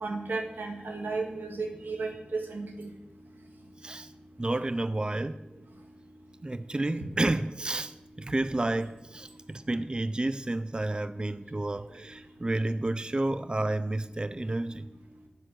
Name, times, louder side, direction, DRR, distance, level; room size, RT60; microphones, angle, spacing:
voice 1, 0.0-2.9, right 3 dB, 90° right, 1.9 m, -34 dB
voice 2, 4.4-5.4 6.4-14.9, right 2 dB, 30° right, 0.5 m, -30 dB
10.5 x 9.6 x 6.4 m
wide cardioid pair, 55°, 3 cm